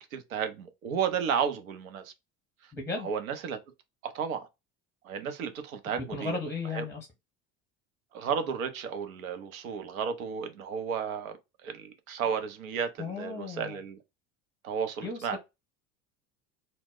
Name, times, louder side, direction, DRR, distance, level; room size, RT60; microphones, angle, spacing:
voice 1, 0.0-2.1 2.6-2.7 3.0-3.6 4.0-4.5 5.0-6.4 6.7-6.8 8.1-11.4 11.6-14.0 14.6-15.4, right 7 dB, 85° right, 0.6 m, -33 dB
voice 2, 2.7-3.1 5.9-7.1 13.0-13.8 15.0-15.4, left 4 dB, 5° left, 0.6 m, -35 dB
2.1 x 2.0 x 3.5 m
hypercardioid pair, 70°, 41 cm